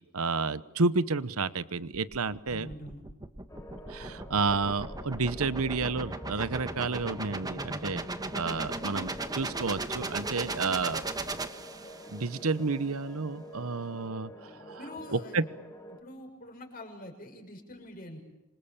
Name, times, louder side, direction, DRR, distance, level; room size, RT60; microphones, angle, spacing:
voice 1, 0.1-2.7 3.9-8.0 8.3-11.0 12.1-14.8 15.1-15.4, right 4 dB, 75° right, 15 dB, 1.0 m, -30 dB
sound 1, 1.9-12.3, right 2 dB, 15° right, 1.3 m, -37 dB
voice 2, 2.5-3.0 14.8-15.4 15.9-18.2, left 1 dB, 40° left, 3 dB, 6.6 m, -45 dB
sound 2, 3.5-16.0, left 1 dB, 15° left, 2.7 m, -48 dB
27.5 x 25.5 x 7.3 m, 0.96 s
head